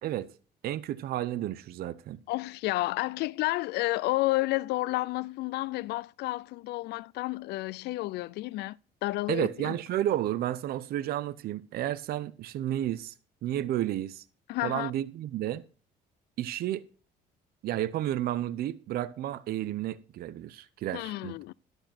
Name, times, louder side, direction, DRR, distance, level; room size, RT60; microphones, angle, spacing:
voice 1, 0.0-0.3 0.6-2.2 9.3-13.1 13.4-14.2 14.6-15.6 16.4-16.8 17.6-21.4, right 12 dB, 65° right, 0.7 m, -32 dB
voice 2, 2.3-9.8 14.5-14.9 20.9-21.5, left 19 dB, 80° left, 0.4 m, -31 dB
10.5 x 7.9 x 4.3 m
cardioid pair, 110°, 17 cm